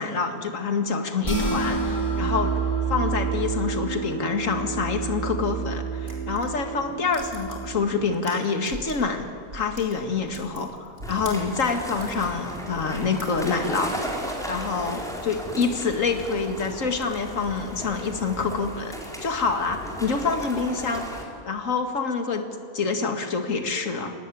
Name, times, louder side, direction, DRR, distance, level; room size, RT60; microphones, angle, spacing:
voice 1, 0.0-2.6 2.9-9.3 9.5-13.9 14.5-19.0 19.2-21.1 21.4-22.4 22.7-24.1, left 4 dB, 50° left, 5 dB, 2.4 m, -26 dB
sound 1, 1.2-7.7, right 5 dB, 20° left, 7.1 m, -28 dB
sound 2, 6.0-9.2 9.4-12.2 12.7-13.8, right 1 dB, 40° right, 5.4 m, -43 dB
sound 3, 11.0-21.2, equal, ahead, 4.3 m, -35 dB
25.5 x 19.0 x 10.0 m, 2.2 s
omnidirectional pair, 1.7 m